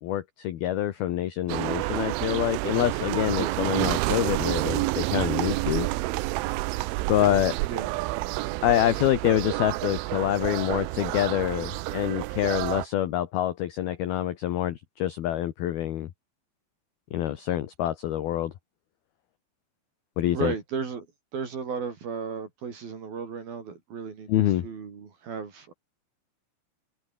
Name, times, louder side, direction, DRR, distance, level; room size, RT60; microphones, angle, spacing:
voice 1, 0.0-5.9 7.1-7.6 8.6-16.1 17.1-18.5 20.2-20.5 24.3-24.7, left 12 dB, 65° left, 2.9 m, -26 dB
sound 1, 1.5-12.9, right 20 dB, 85° right, 3.2 m, -29 dB
voice 2, 20.3-21.1 21.3-24.3 24.6-25.7, right 6 dB, 50° right, 5.2 m, -34 dB
open air
omnidirectional pair, 5.6 m